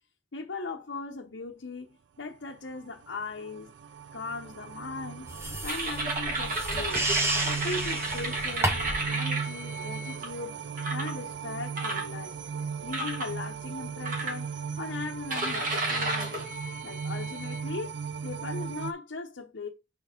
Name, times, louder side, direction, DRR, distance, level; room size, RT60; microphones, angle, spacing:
voice 1, 0.3-3.7 4.1-5.3 5.6-7.1 7.4-10.6 10.9-12.4 12.8-14.5 14.8-16.5 16.8-17.9 18.2-19.7, left 3 dB, 85° left, 0.9 m, -39 dB
sound 1, 2.7-18.9, right 6 dB, 70° right, 0.4 m, -37 dB
sound 2, 5.3-9.1, right 1 dB, 15° right, 1.0 m, -32 dB
sound 3, 5.7-10.3 10.8-11.2 11.8-12.5 12.9-13.3 14.0-14.8 15.3-17.6, right 2 dB, 45° right, 1.8 m, -33 dB
5.4 x 4.2 x 5.1 m
head